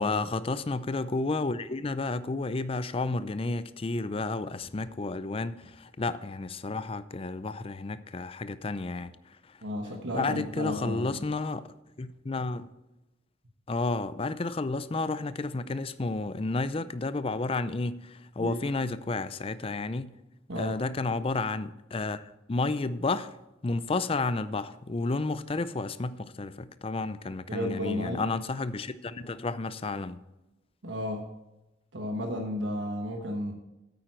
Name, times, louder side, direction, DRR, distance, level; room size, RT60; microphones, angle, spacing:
voice 1, 0.0-9.1 9.5-9.6 10.1-12.7 13.7-20.2 20.6-23.3 23.6-30.2, left 3 dB, 30° left, 0.5 m, -31 dB
voice 2, 9.6-11.2 18.4-18.6 20.5-20.8 27.5-28.2 30.8-31.3 31.9-33.5, equal, 80° right, 1.3 m, -33 dB
9.1 x 8.9 x 4.5 m
head